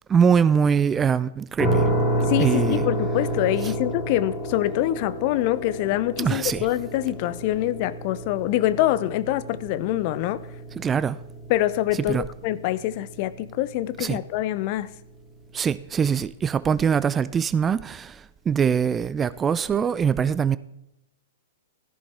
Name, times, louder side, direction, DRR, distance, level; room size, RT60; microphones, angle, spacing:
voice 1, 0.1-1.9 2.4-2.8 6.2-6.7 10.8-11.2 12.1-12.2 14.0-14.2 15.5-18.2 18.5-20.6, right 7 dB, 20° right, 0.3 m, -22 dB
sound 1, 1.6-14.4, right 1 dB, 10° left, 2.2 m, -30 dB
voice 2, 2.3-10.4 11.5-14.9, left 14 dB, 40° left, 0.6 m, -25 dB
13.5 x 11.0 x 3.5 m
figure-of-eight pair, 105°, 0 cm